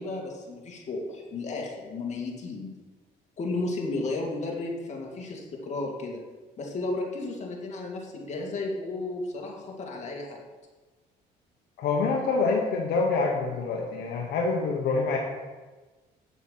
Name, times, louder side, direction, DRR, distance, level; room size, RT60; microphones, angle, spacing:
voice 1, 0.0-2.7 3.4-6.2 6.6-10.4, left 2 dB, 45° left, -1 dB, 2.3 m, -33 dB
voice 2, 11.8-15.2, left 4 dB, 70° left, 0 dB, 1.3 m, -26 dB
8.3 x 7.1 x 5.6 m, 1.3 s
cardioid pair, 110°, 17 cm